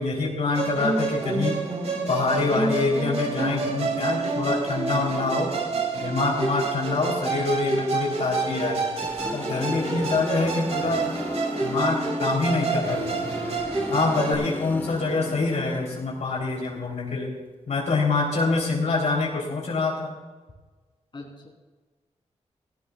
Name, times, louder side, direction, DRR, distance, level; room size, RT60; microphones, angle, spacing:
voice 1, 0.0-1.6 2.1-5.5 5.9-8.8 9.3-11.1 11.6-13.5 13.9-17.3 17.7-20.1, left 3 dB, 70° left, -1 dB, 3.4 m, -25 dB
Musical instrument, 0.5-14.4, right 4 dB, 65° right, 2.9 m, -28 dB
voice 2, 5.2-5.8 9.7-10.3 14.1-15.1 18.3-18.8 21.1-21.5, left 3 dB, 40° left, -1 dB, 3.5 m, -40 dB
sound 1, 8.6-16.4, left 1 dB, 15° left, 1.2 m, -34 dB
17.5 x 17.0 x 2.4 m, 1.3 s
wide cardioid pair, 110°, 12 cm